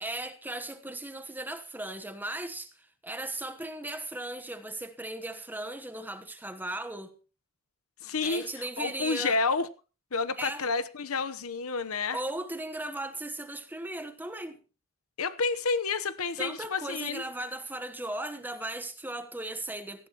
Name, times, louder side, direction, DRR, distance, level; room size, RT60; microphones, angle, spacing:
voice 1, 0.0-7.1 8.2-9.4 10.4-10.7 12.1-14.6 16.4-20.1, right 1 dB, 10° right, 1.1 m, -37 dB
voice 2, 8.0-9.7 10.1-12.2 15.2-17.2, left 4 dB, 75° left, 1.0 m, -30 dB
18.0 x 15.0 x 3.0 m
head